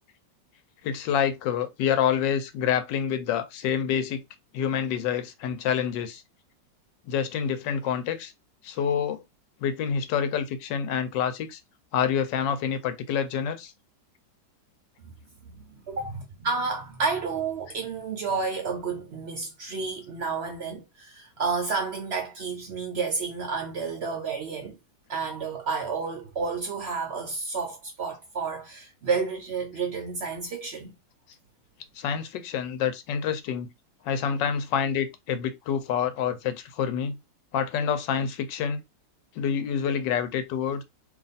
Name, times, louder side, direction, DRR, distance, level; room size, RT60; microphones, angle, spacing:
voice 1, 0.8-4.2 4.5-6.2 7.0-8.3 8.6-9.2 9.6-11.6 11.9-13.7 31.9-33.7 34.0-37.2 37.5-38.8 39.4-40.8, left 8 dB, 90° left, 1.3 m, -27 dB
voice 2, 15.9-24.8 25.1-30.9, right 4 dB, 70° right, 0.6 m, -31 dB
2.9 x 2.4 x 4.0 m
omnidirectional pair, 1.9 m